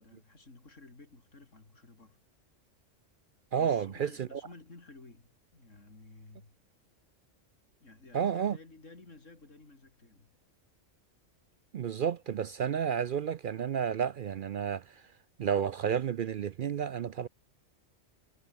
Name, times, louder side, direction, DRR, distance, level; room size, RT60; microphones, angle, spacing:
voice 1, 0.0-2.2 3.5-6.5 7.8-10.3, left 3 dB, 90° left, 4.2 m, -54 dB
voice 2, 3.5-4.4 8.1-8.6 11.7-14.8 15.4-17.3, right 8 dB, 55° right, 0.6 m, -31 dB
omnidirectional pair, 1.3 m